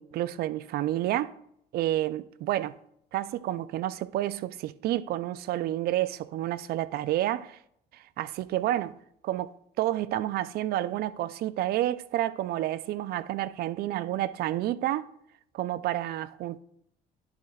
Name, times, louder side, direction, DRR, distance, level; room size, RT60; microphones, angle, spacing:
voice 1, 0.0-1.3 1.7-2.8 3.1-7.6 7.9-9.0 9.2-15.1 15.5-16.6, right 14 dB, 65° right, 0.4 m, -30 dB
11.0 x 7.2 x 2.3 m
cardioid pair, 110°, 17 cm